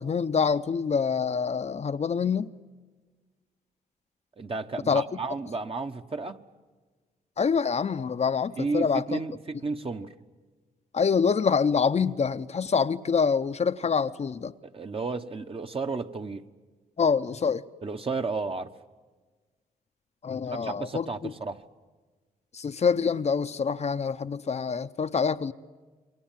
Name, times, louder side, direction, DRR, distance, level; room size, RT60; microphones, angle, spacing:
voice 1, 0.0-2.5 4.9-5.2 7.4-9.2 10.9-14.5 17.0-17.6 20.2-21.3 22.5-25.5, left 6 dB, 45° left, 0.8 m, -26 dB
voice 2, 4.4-6.4 8.6-10.1 14.6-16.4 17.8-18.7 20.6-21.6, right 3 dB, 35° right, 1.3 m, -32 dB
28.5 x 23.5 x 7.5 m
cardioid pair, 65°, 16 cm